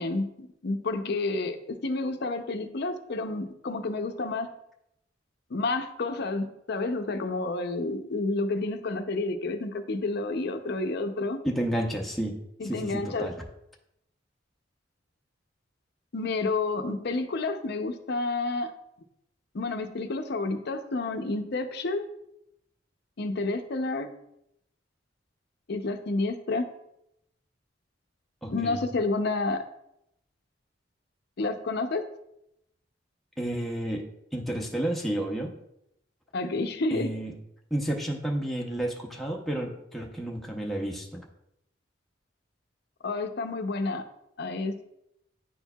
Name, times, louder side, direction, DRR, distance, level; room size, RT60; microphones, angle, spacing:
voice 1, 0.0-4.5 5.5-11.4 12.6-13.3 16.1-18.7 19.5-22.1 23.2-24.1 25.7-26.6 28.5-29.6 31.4-32.0 36.3-37.1 43.0-44.0 44.4-44.7, left 3 dB, 60° left, 8 dB, 0.6 m, -30 dB
voice 2, 11.4-12.4 12.6-13.4 28.4-28.9 33.4-34.0 34.3-35.5 36.9-37.3 37.7-41.3, right 1 dB, ahead, -1 dB, 0.7 m, -31 dB
9.7 x 4.5 x 2.3 m, 0.81 s
head